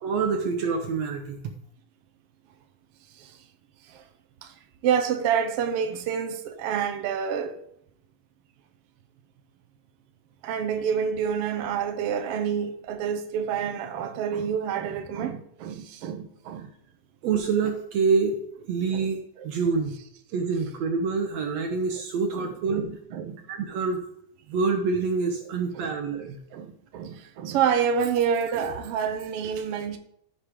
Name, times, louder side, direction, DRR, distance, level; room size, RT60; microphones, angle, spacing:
voice 1, 0.0-1.4 17.2-18.4 18.7-19.9 20.3-22.8 23.5-24.0 24.5-26.4, right 5 dB, 70° right, 1.8 m, -26 dB
voice 2, 4.8-7.5 10.4-16.7 18.9-19.1 19.4-19.5 22.3-23.4 25.7-30.0, right 7 dB, 90° right, 1.3 m, -28 dB
14.5 x 6.7 x 3.7 m
omnidirectional pair, 3.8 m